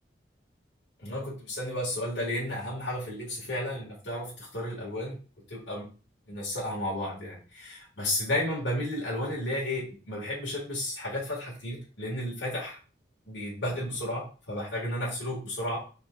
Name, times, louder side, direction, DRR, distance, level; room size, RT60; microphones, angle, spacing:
voice 1, 1.0-5.2 5.5-5.9 6.3-12.8 13.3-15.8, left 1 dB, 80° left, -5 dB, 1.5 m, -33 dB
5.7 x 3.9 x 2.2 m, 0.37 s
head